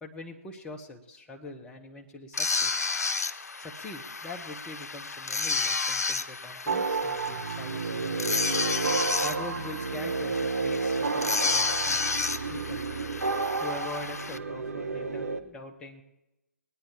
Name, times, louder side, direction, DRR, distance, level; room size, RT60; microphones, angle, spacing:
voice 1, 0.0-2.8 3.6-8.4 9.2-12.1 12.5-12.8 13.6-16.0, left 2 dB, 10° left, 0 dB, 0.9 m, -43 dB
sound 1, 2.3-14.4, left 4 dB, 80° left, 0.6 m, -31 dB
sound 2, 6.7-15.4, right 4 dB, 65° right, 1.0 m, -31 dB
20.0 x 9.3 x 4.4 m, 0.96 s
figure-of-eight pair, 130°, 9 cm